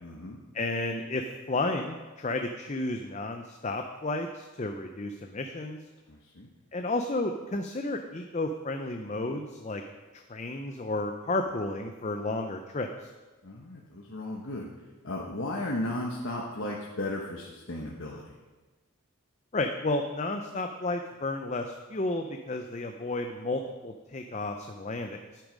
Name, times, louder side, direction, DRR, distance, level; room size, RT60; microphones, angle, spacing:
voice 1, 0.0-0.4 6.1-6.5 13.4-18.3, left 1 dB, 70° left, -2 dB, 1.2 m, -35 dB
voice 2, 0.5-5.8 6.7-9.8 10.1-13.1 19.5-25.4, left 2 dB, 30° left, 5 dB, 0.5 m, -32 dB
10.5 x 8.9 x 5.2 m, 1.3 s
head